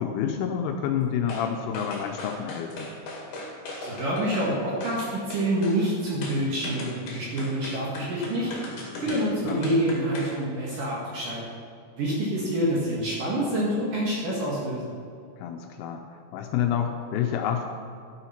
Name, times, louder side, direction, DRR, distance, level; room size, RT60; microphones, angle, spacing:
voice 1, 0.0-2.9 9.1-9.6 15.4-16.0 16.3-17.7, left 8 dB, 80° left, 4 dB, 3.0 m, -28 dB
sound 1, 1.3-1.5 1.7-4.5 4.8-5.8 6.2-10.4 10.7-10.8, left 2 dB, 50° left, 3.0 m, -38 dB
voice 2, 3.8-8.5 9.0-11.4 12.0-14.9, right 1 dB, 55° right, -5 dB, 2.8 m, -27 dB
13.0 x 8.8 x 5.8 m, 2.5 s
omnidirectional pair, 6.0 m